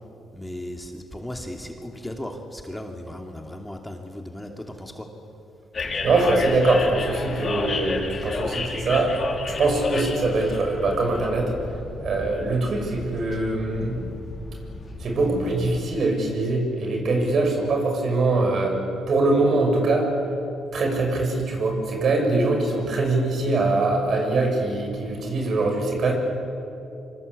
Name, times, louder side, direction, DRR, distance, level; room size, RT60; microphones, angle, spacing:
voice 1, 0.3-5.1, left 1 dB, 10° left, 3 dB, 2.6 m, -36 dB
sound 1, 5.7-15.8, left 3 dB, 40° left, 4.1 m, -32 dB
voice 2, 6.0-9.1 9.4-11.5 12.0-14.0 15.0-18.8 19.1-20.1 20.7-26.1, right 2 dB, 55° right, 2 dB, 7.0 m, -23 dB
26.0 x 25.0 x 8.5 m, 2.7 s
cardioid pair, 90°, 0 cm